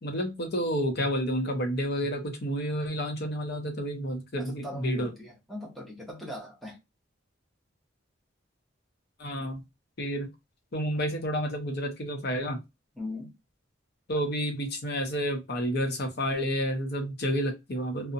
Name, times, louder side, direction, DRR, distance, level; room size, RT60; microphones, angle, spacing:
voice 1, 0.0-5.1 9.2-9.6 10.0-10.3 10.7-12.6 14.1-18.1, equal, 55° left, 0.7 m, -30 dB
voice 2, 4.4-6.8 13.0-13.3, left 1 dB, ahead, 0.6 m, -40 dB
2.6 x 2.0 x 2.6 m
head